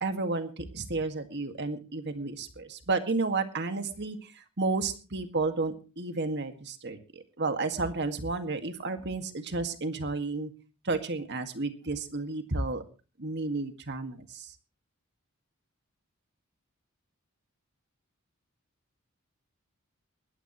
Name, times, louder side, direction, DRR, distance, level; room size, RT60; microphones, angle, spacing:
voice 1, 0.0-10.5 10.8-12.8 13.2-14.5, right 3 dB, 55° right, 7 dB, 2.0 m, -32 dB
20.0 x 14.5 x 3.1 m, 0.33 s
head